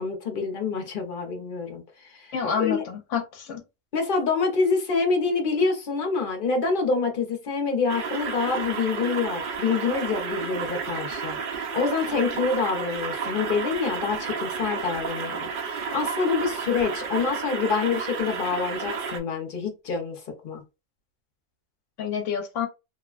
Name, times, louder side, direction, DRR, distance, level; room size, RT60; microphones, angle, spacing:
voice 1, 0.0-2.8 3.9-20.6, left 4 dB, 50° left, 0.8 m, -27 dB
voice 2, 2.3-3.6 22.0-22.7, left 7 dB, 75° left, 0.9 m, -28 dB
sound 1, 7.9-19.2, right 5 dB, 60° right, 0.5 m, -32 dB
2.9 x 2.1 x 2.4 m
omnidirectional pair, 1.3 m